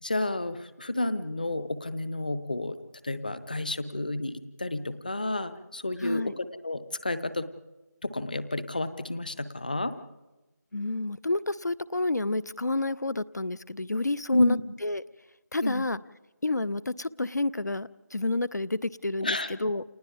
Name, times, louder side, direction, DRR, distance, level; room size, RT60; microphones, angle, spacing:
voice 1, 0.0-2.8 3.0-7.5 8.0-9.9 14.3-14.6 15.6-15.8 19.2-19.5, left 1 dB, 30° left, 13 dB, 0.9 m, -30 dB
voice 2, 6.0-6.3 10.7-15.0 15.5-16.0 16.4-19.8, left 2 dB, 70° left, 18 dB, 0.7 m, -30 dB
30.0 x 28.5 x 3.6 m, 1.0 s
figure-of-eight pair, 175°, 10 cm